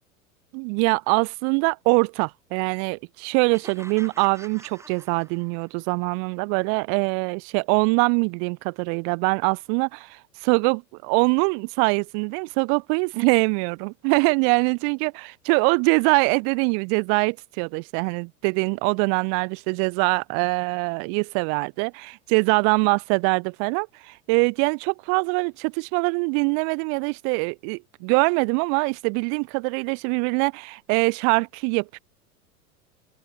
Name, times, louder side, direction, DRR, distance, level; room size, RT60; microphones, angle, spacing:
voice 1, 0.5-32.0, right 40 dB or more, 30° right, 0.5 m, -23 dB
sound 1, 3.5-5.8, right 2 dB, 5° right, 4.2 m, -47 dB
open air
figure-of-eight pair, 90°, 44 cm